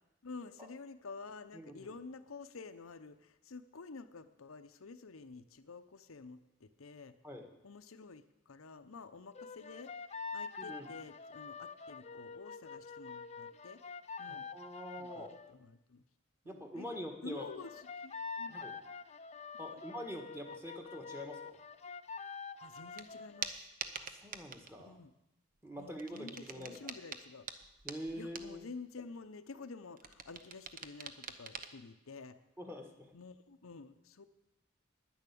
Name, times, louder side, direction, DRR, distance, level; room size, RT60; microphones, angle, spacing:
voice 1, 0.2-7.2 7.6-13.8 14.2-14.5 15.0-16.0 16.4-16.9 17.2-18.6 19.6-19.8 22.6-23.7 24.8-25.1 25.8-27.5 28.2-32.4 33.1-34.2, left 4 dB, 90° left, 8 dB, 0.8 m, -50 dB
voice 2, 1.5-1.9 7.2-7.5 10.6-10.9 14.3-15.3 16.4-17.4 18.5-18.8 19.6-21.6 23.9-24.9 25.6-26.9 27.8-28.6 32.6-33.1, equal, 10° right, 3 dB, 1.6 m, -45 dB
sound 1, 9.4-15.6 17.4-23.6, left 5 dB, 30° left, 0.5 m, -46 dB
sound 2, 23.0-23.1 23.4-24.7 25.9-28.6 30.0-31.7, right 6 dB, 40° right, 0.8 m, -44 dB
10.5 x 10.0 x 8.5 m, 0.91 s
head